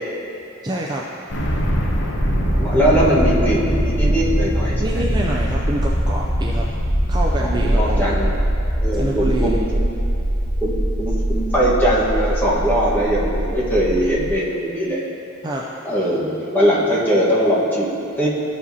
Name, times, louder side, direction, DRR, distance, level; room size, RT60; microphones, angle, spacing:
voice 1, 0.6-1.0 4.8-6.7 7.1-8.2 8.9-9.6 15.4-15.6, right 1 dB, 20° right, -3 dB, 0.3 m, -26 dB
sound 1, 1.3-14.3, equal, 60° left, 0.8 m, -21 dB
voice 2, 2.3-5.0 7.4-8.3 8.8-9.9 10.6-10.7 11.0-15.0 15.8-18.3, equal, 10° left, -7 dB, 1.2 m, -20 dB
12.5 x 5.0 x 2.7 m, 2.7 s
head